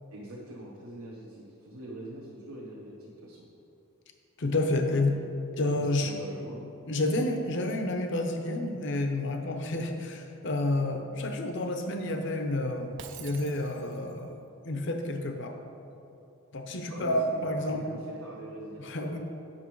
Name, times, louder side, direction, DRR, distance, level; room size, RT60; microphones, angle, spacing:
voice 1, 0.1-3.4 5.8-6.6 16.9-19.2, right 1 dB, 75° right, -4 dB, 0.9 m, -43 dB
voice 2, 4.4-5.2 5.6-6.1 6.9-14.4 14.6-15.5 16.5-18.0 18.8-19.2, left 2 dB, 55° left, 5 dB, 0.7 m, -29 dB
Shatter, 13.0-14.2, right 7 dB, 55° right, 0.5 m, -46 dB
8.7 x 6.1 x 4.6 m, 2.8 s
head